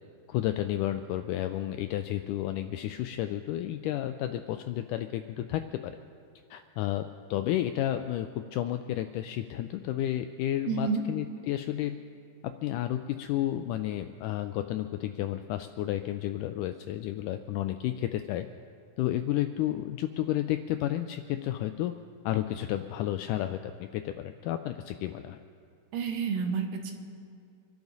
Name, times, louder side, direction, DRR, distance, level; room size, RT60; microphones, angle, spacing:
voice 1, 0.3-6.0 6.5-7.0 7.3-12.0 12.6-18.4 19.0-21.9 22.2-25.4, left 13 dB, 85° left, 8 dB, 1.8 m, -31 dB
voice 2, 10.7-11.0 25.9-26.9, right 5 dB, 75° right, 4 dB, 2.7 m, -29 dB
26.0 x 12.0 x 4.0 m, 2.4 s
omnidirectional pair, 4.1 m